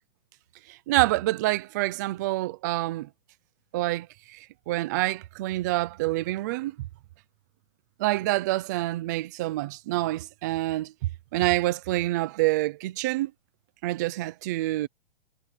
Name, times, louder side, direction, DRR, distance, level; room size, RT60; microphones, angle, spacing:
voice 1, 0.7-3.1 3.7-4.1 4.3-6.8 8.0-10.9 11.3-13.3 13.8-14.9, right 18 dB, 20° right, 0.4 m, -27 dB
hypercardioid pair, 160°, 33 cm